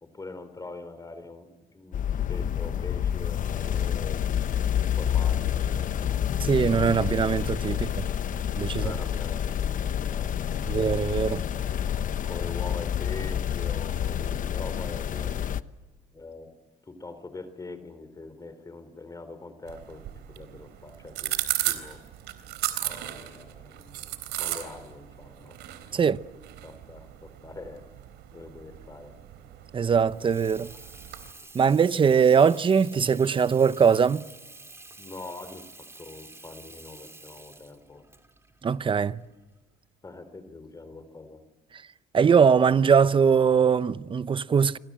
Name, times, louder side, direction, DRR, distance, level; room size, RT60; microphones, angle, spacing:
voice 1, 0.0-6.2 7.7-8.0 8.8-10.6 11.5-11.6 11.9-15.4 16.1-16.5 16.8-22.0 22.8-24.1 24.4-25.6 25.9-26.1 26.6-27.8 28.3-29.2 32.0-32.2 35.0-35.7 36.0-38.0 40.0-41.4, left 3 dB, 20° left, 3.7 m, -43 dB
sound 1, 1.9-15.6, left 9 dB, 50° left, 1.0 m, -28 dB
voice 2, 6.4-7.8 8.6-8.9 10.7-11.4 25.9-26.2 29.7-30.7 31.5-34.3 38.6-39.2 42.1-44.8, right 6 dB, 30° right, 0.8 m, -21 dB
sound 2, 19.7-31.3, right 14 dB, 85° right, 3.7 m, -36 dB
Water tap faucet / Sink (filling or washing), 30.0-39.6, right 2 dB, 15° right, 3.0 m, -49 dB
29.5 x 25.5 x 7.6 m
cardioid pair, 110°, 17 cm